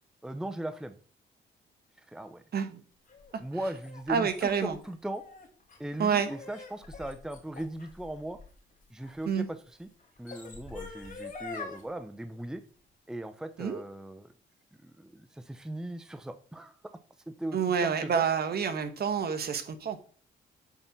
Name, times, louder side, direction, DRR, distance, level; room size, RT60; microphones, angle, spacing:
voice 1, 0.2-1.0 2.0-2.4 3.4-5.2 5.8-8.4 8.9-9.9 10.2-12.6 13.1-14.3 14.8-16.8 17.3-18.3, right 1 dB, 5° right, 10 dB, 0.7 m, -38 dB
sound 1, 3.1-9.2 10.0-11.8, left 4 dB, 45° left, 2.6 m, -45 dB
voice 2, 4.1-4.7 6.0-6.3 9.3-9.5 13.6-13.8 17.5-20.0, right 7 dB, 55° right, 8 dB, 1.3 m, -28 dB
8.9 x 4.2 x 6.0 m, 0.42 s
cardioid pair, 90°, 20 cm